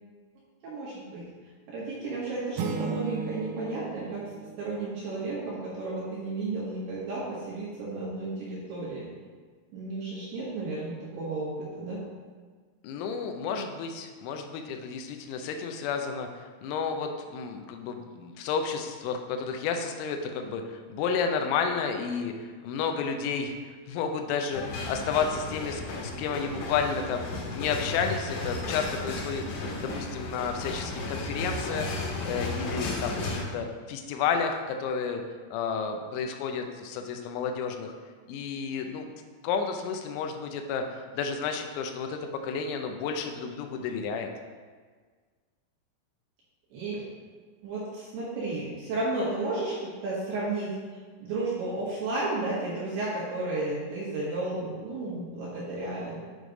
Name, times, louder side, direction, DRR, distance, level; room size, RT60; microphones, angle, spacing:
voice 1, 0.6-1.2 1.7-4.2 4.6-9.0 9.7-12.0 46.7-47.0 47.6-50.7 51.2-56.2, right 2 dB, 70° right, -7 dB, 2.7 m, -33 dB
sound 1, 2.6-5.4, right 6 dB, 85° right, 3.4 m, -35 dB
voice 2, 12.8-22.3 22.6-27.3 27.5-29.5 29.8-32.0 32.2-35.2 35.5-37.9 38.3-39.1 39.4-44.3, left 6 dB, 85° left, 4 dB, 3.4 m, -31 dB
sound 2, 24.5-33.4, left 2 dB, 70° left, 3.5 m, -34 dB
9.0 x 3.2 x 5.0 m, 1.5 s
omnidirectional pair, 6.0 m